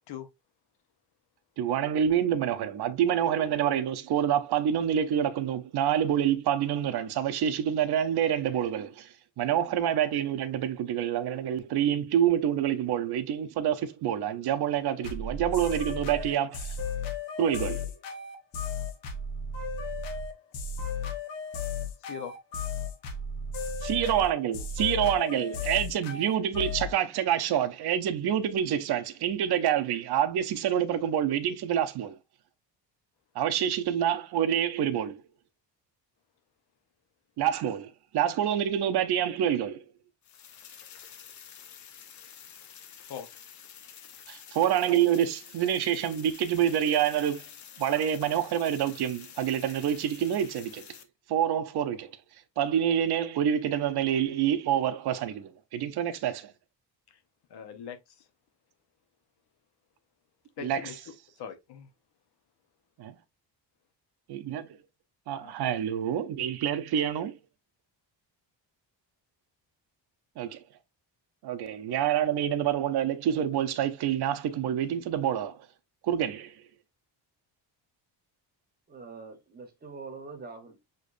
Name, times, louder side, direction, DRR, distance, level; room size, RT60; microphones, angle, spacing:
voice 1, 1.6-16.8 17.4-17.9 23.8-32.2 33.3-35.2 37.4-39.8 44.3-47.4 47.8-50.8 51.3-52.1 52.6-56.5 60.6-60.8 63.0-63.1 64.3-64.7 65.3-67.4 70.4-70.6 71.4-75.6 76.0-76.5, right 10 dB, 60° right, 0.8 m, -27 dB
sound 1, 15.0-26.9, left 4 dB, 80° left, 1.3 m, -34 dB
voice 2, 22.0-22.3 43.0-43.3 57.1-57.2 57.5-58.3 60.6-61.0 61.4-61.9 65.4-65.5, left 8 dB, 60° left, 0.9 m, -41 dB
sound 2, 40.2-51.0, left 8 dB, 40° left, 0.6 m, -49 dB
voice 3, 78.9-80.8, right 4 dB, 20° right, 1.0 m, -44 dB
6.6 x 3.2 x 2.5 m
cardioid pair, 175°, 45 cm